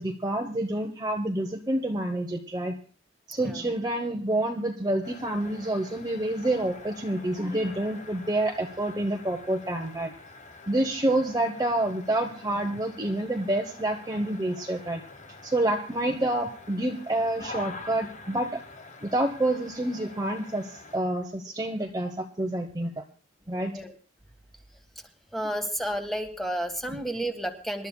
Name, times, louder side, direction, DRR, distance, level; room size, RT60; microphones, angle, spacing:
voice 1, 0.0-2.8 3.3-10.1 10.7-15.0 15.4-18.6 19.0-23.0 23.5-23.7, right 1 dB, 20° right, 3 dB, 0.8 m, -28 dB
sound 1, 5.0-21.0, left 3 dB, 35° left, 1.0 m, -46 dB
voice 2, 25.3-27.9, right 1 dB, ahead, 5 dB, 1.4 m, -31 dB
26.0 x 12.0 x 2.2 m, 0.39 s
head